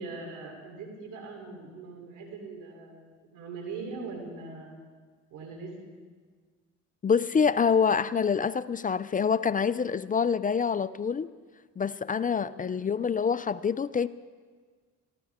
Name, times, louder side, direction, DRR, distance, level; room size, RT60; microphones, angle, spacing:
voice 1, 0.0-4.7 5.3-6.0 12.3-12.7, right 3 dB, 90° right, 2 dB, 3.5 m, -41 dB
voice 2, 7.0-11.3 11.8-14.1, left 6 dB, 30° left, 15 dB, 0.4 m, -26 dB
23.5 x 15.0 x 3.6 m, 1.5 s
cardioid pair, 90°, 30 cm